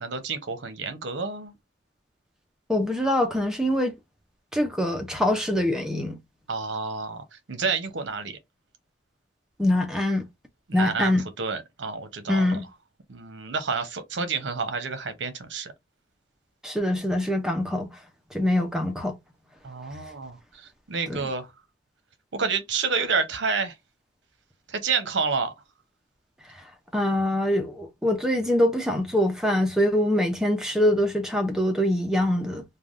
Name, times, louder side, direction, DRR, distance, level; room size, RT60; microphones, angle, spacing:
voice 1, 0.0-1.5 6.5-8.4 10.7-11.1 11.4-12.6 13.1-15.7 19.6-21.5 22.3-23.7 24.7-25.5, right 4 dB, 75° right, 0.7 m, -29 dB
voice 2, 2.7-3.9 4.5-6.2 9.6-10.3 10.7-11.2 12.3-12.6 16.6-17.9 18.3-19.2 21.1-21.2 26.9-32.6, left 1 dB, 5° right, 0.4 m, -24 dB
3.3 x 2.2 x 2.4 m
head